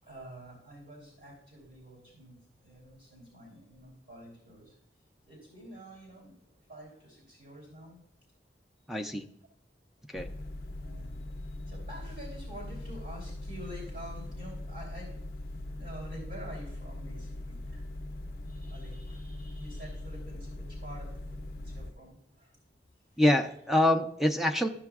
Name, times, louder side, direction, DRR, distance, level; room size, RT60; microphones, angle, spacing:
voice 1, 0.0-4.8 5.3-6.4 6.7-8.0 10.8-18.0 18.4-22.6 23.1-23.2, equal, 65° right, -4 dB, 3.2 m, -48 dB
voice 2, 8.9-9.3 10.1-10.3 23.2-24.7, left 1 dB, ahead, 6 dB, 0.4 m, -25 dB
sound 1, 10.1-21.9, left 1 dB, 55° left, 0.5 m, -41 dB
14.0 x 6.8 x 2.4 m, 0.73 s
head